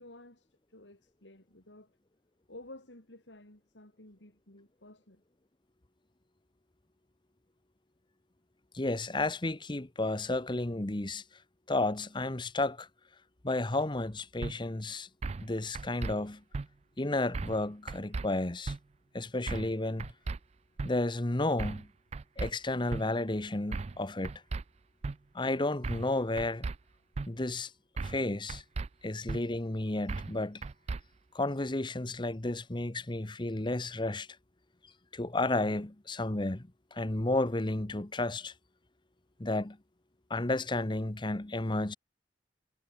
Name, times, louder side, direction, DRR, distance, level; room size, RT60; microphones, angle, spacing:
voice 1, 0.0-2.0 2.5-5.2 14.7-14.8 27.3-27.4, left 1 dB, 85° left, 5.7 m, -53 dB
voice 2, 8.7-11.2 11.7-12.9 13.4-15.1 15.4-16.4 17.0-18.7 19.1-20.1 20.8-21.9 22.4-24.4 25.3-26.7 27.3-27.7 28.0-28.6 29.0-30.6 31.3-34.3 35.1-38.5 39.4-39.8 40.3-42.0, left 2 dB, 25° left, 1.0 m, -32 dB
sound 1, 14.4-14.5 15.2-15.5 15.8-16.1 16.5-16.7 17.3-17.6 17.9-18.3 18.7-18.8 19.5-19.7 20.0-20.4 20.8-20.9 21.6-21.8 22.1-22.5 22.9-23.0 23.7-24.0 24.2-24.6 25.0-25.2 25.8-26.1 26.4-26.8 27.2-27.3 28.0-28.2 28.5-28.9 29.3-29.4 30.1-30.3 30.6-31.0, right 3 dB, 35° right, 0.4 m, -35 dB
head